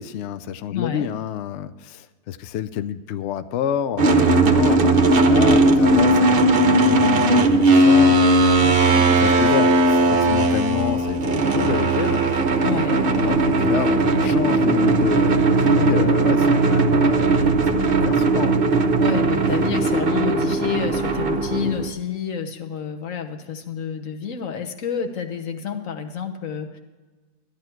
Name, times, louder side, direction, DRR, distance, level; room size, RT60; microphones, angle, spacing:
voice 1, 0.0-8.8 9.2-12.2 13.2-18.6, left 9 dB, 75° left, 12 dB, 0.6 m, -28 dB
voice 2, 0.7-1.1 8.6-9.1 12.6-13.1 15.7-16.1 19.0-26.8, left 7 dB, 55° left, 5 dB, 1.4 m, -29 dB
sound 1, 4.0-21.9, right 2 dB, 45° right, 0.9 m, -18 dB
13.5 x 11.0 x 4.5 m, 1.3 s
omnidirectional pair, 1.7 m